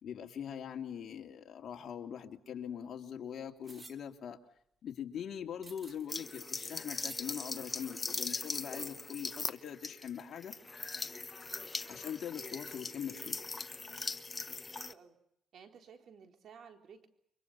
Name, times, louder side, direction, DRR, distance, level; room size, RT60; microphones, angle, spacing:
voice 1, 0.0-4.4 4.8-10.5 11.9-13.4, left 8 dB, 60° left, 3 dB, 2.7 m, -42 dB
sound 1, 3.6-4.0 5.6-6.1 6.9-7.3, right 3 dB, 25° right, 2.6 m, -51 dB
sound 2, 6.1-14.9, left 3 dB, 25° left, 1.1 m, -40 dB
voice 2, 14.7-15.2 15.5-17.1, right 6 dB, 65° right, 4 dB, 3.8 m, -55 dB
29.5 x 24.0 x 5.6 m, 0.73 s
cardioid pair, 90°, 0 cm